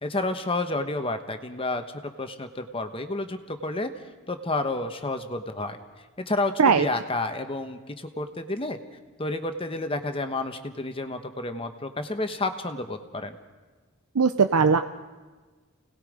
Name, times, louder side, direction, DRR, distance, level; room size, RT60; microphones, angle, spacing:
voice 1, 0.0-1.8 2.2-3.9 4.3-5.8 6.2-8.8 9.2-13.4, left 2 dB, 25° left, 8 dB, 1.1 m, -30 dB
voice 2, 14.2-14.8, right 5 dB, 85° right, 8 dB, 0.7 m, -19 dB
29.5 x 19.0 x 5.0 m, 1.3 s
head